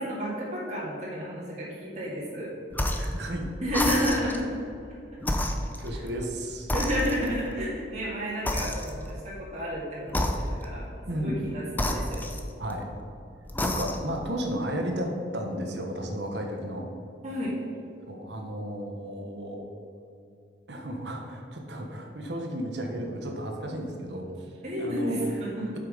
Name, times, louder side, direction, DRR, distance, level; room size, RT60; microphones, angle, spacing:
voice 1, 0.0-2.5 2.9-3.0 3.6-4.4 5.3-5.4 5.9-6.0 6.7-10.3 10.6-10.8 11.2-12.2 17.2-17.5 24.6-25.7, equal, 40° right, -7 dB, 2.1 m, -31 dB
sound 1, 2.7-3.2 3.7-4.5 5.2-6.3 6.7-7.5 8.4-9.2 10.1-10.8 11.7-12.8 13.4-14.2, left 1 dB, 10° left, 0.6 m, -30 dB
voice 2, 3.0-3.5 5.8-6.7 11.1-11.4 12.6-12.9 13.6-16.8 18.1-19.7 20.7-24.5 24.8-25.3, equal, 75° right, 2 dB, 1.2 m, -33 dB
8.1 x 5.9 x 5.0 m, 2.6 s
head